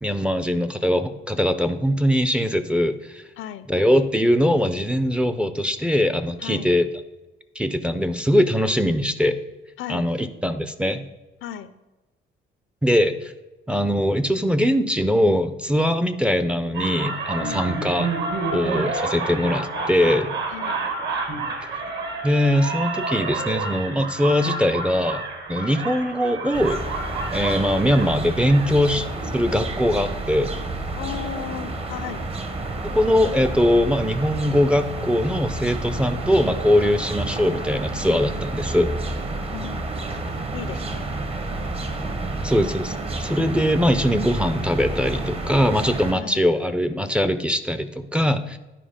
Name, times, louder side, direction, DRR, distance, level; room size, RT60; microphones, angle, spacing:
voice 1, 0.0-3.2 3.7-6.9 7.6-9.4 9.9-11.0 12.8-13.3 13.7-18.1 18.5-20.3 22.2-25.2 25.5-26.8 27.3-29.1 29.3-30.5 32.9-38.9 42.4-48.6, equal, 5° right, 9 dB, 0.5 m, -21 dB
voice 2, 3.4-3.7 6.4-6.7 9.8-10.1 11.4-11.7 17.4-17.7 20.5-20.8 30.9-32.3 39.5-39.8 40.5-41.1 46.1-46.5, left 10 dB, 75° left, 13 dB, 0.6 m, -35 dB
sound 1, 16.7-28.7, right 3 dB, 60° right, 1.8 m, -29 dB
sound 2, 26.5-46.1, right 2 dB, 30° right, 0.9 m, -30 dB
10.0 x 4.7 x 5.0 m, 1.1 s
cardioid pair, 130°, 20 cm